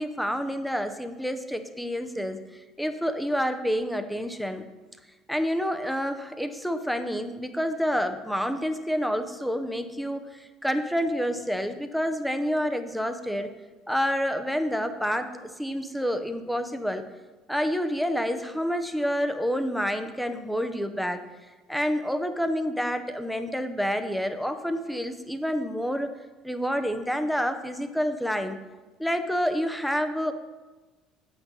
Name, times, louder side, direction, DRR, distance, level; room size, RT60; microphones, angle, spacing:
voice 1, 0.0-2.4 2.8-4.7 5.3-13.5 13.9-17.1 17.5-21.2 21.7-26.1 26.4-28.6 29.0-30.3, equal, ahead, 8 dB, 0.7 m, -28 dB
7.7 x 6.1 x 5.4 m, 1.2 s
cardioid pair, 110°, 0 cm